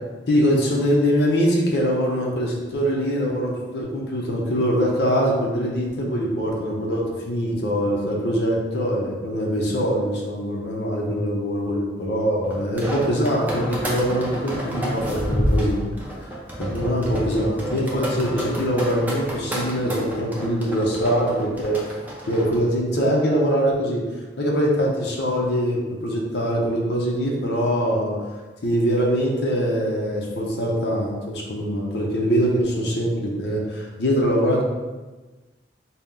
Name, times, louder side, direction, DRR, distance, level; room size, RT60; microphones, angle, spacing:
voice 1, 0.3-15.9 16.2-21.8 22.3-24.0 24.4-28.2 28.6-34.6, equal, 70° left, -2 dB, 0.7 m, -23 dB
sound 1, 12.5-22.6, equal, 10° right, 0.5 m, -29 dB
4.1 x 2.1 x 3.7 m, 1.2 s
head